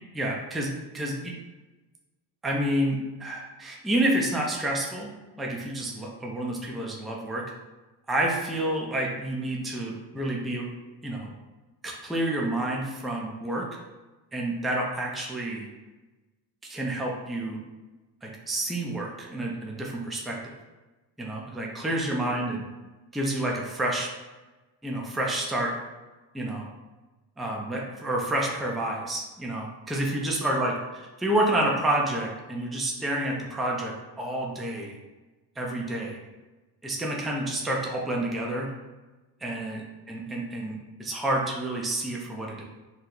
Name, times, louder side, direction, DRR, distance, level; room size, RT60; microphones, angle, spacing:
voice 1, 0.1-1.3 2.4-5.1 5.4-7.4 8.1-10.7 11.0-11.3 11.8-13.7 14.3-15.7 16.6-17.6 18.2-20.5 21.2-22.7 23.1-24.1 24.8-25.7 26.3-26.7 27.4-30.7 31.2-35.0 35.6-36.2 36.8-38.7 39.4-39.8 40.1-42.6, right 1 dB, ahead, -1 dB, 0.3 m, -29 dB
2.8 x 2.1 x 3.8 m, 1.2 s
cardioid pair, 105°, 48 cm